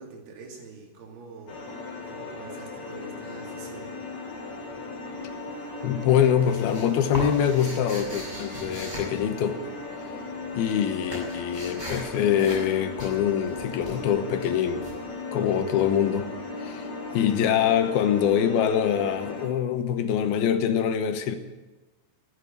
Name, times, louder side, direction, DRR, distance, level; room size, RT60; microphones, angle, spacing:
voice 1, 0.0-1.7 2.1-3.9, right 4 dB, 80° right, 1 dB, 4.6 m, -45 dB
sound 1, 1.5-19.5, left 3 dB, 45° left, 4.2 m, -37 dB
sound 2, 5.2-5.7 6.0-10.0 10.3-15.9, right 1 dB, 10° right, 5.8 m, -39 dB
voice 2, 5.8-9.6 10.5-14.9 15.3-16.3 16.6-16.9 17.1-21.4, left 9 dB, 80° left, 8 dB, 2.9 m, -24 dB
14.5 x 9.8 x 10.0 m, 1.1 s
omnidirectional pair, 4.5 m